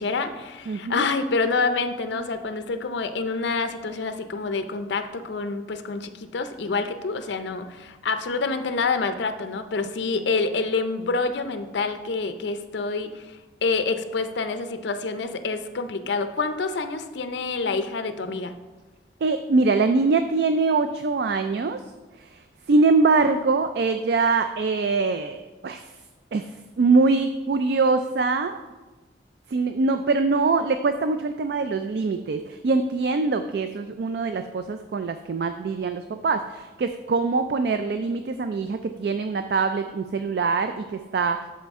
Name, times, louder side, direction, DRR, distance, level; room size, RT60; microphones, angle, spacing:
voice 1, 0.0-18.5, left 4 dB, 75° left, 9 dB, 0.5 m, -27 dB
voice 2, 0.7-1.1 10.1-10.2 19.2-21.8 22.2-25.9 26.3-26.5 26.8-28.6 29.5-41.5, right 3 dB, 60° right, 8 dB, 0.3 m, -23 dB
11.0 x 4.3 x 3.6 m, 1.2 s
head